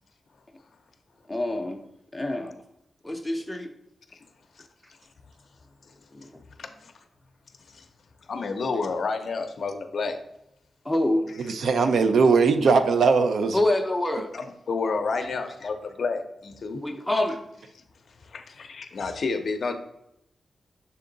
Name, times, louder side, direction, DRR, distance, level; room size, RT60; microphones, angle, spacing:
voice 1, 1.3-1.9 2.1-2.6 3.0-3.7 6.1-6.2 10.8-11.3 13.5-14.3 16.8-17.4, left 1 dB, 5° left, 3 dB, 0.6 m, -26 dB
voice 2, 6.6-6.9 7.7-7.8 8.3-10.2 14.3-16.8 18.2-19.7, left 4 dB, 55° left, 7 dB, 0.6 m, -30 dB
voice 3, 11.5-13.6, right 4 dB, 80° right, 8 dB, 0.5 m, -20 dB
6.8 x 3.7 x 3.8 m, 0.80 s
wide cardioid pair, 175°, 0 cm